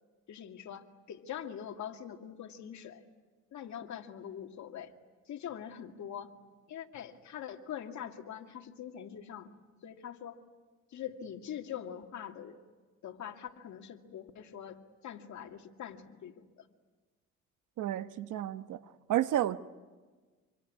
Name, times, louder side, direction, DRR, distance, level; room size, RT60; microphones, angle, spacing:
voice 1, 0.3-3.0 3.5-4.9 5.3-6.3 6.7-9.6 9.8-10.4 10.9-12.6 13.0-16.7, left 9 dB, 70° left, 4 dB, 2.3 m, -43 dB
voice 2, 17.8-18.8 19.1-19.6, right 12 dB, 80° right, 11 dB, 1.1 m, -31 dB
27.5 x 22.5 x 9.6 m, 1.3 s
cardioid pair, 90°, 30 cm